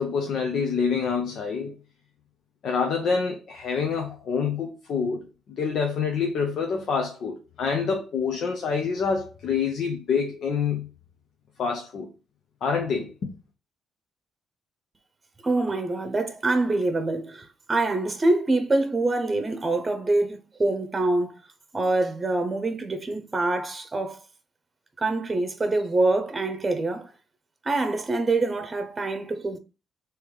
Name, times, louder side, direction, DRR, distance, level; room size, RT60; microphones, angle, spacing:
voice 1, 0.0-1.8 2.6-5.3 5.6-10.9 11.6-12.1 12.6-13.3, left 5 dB, 65° left, 0.9 m, -27 dB
voice 2, 15.4-21.4 21.7-24.2 25.0-27.1 27.6-29.6, right 2 dB, 25° right, 0.9 m, -25 dB
3.5 x 3.1 x 4.8 m
cardioid pair, 90°, 0 cm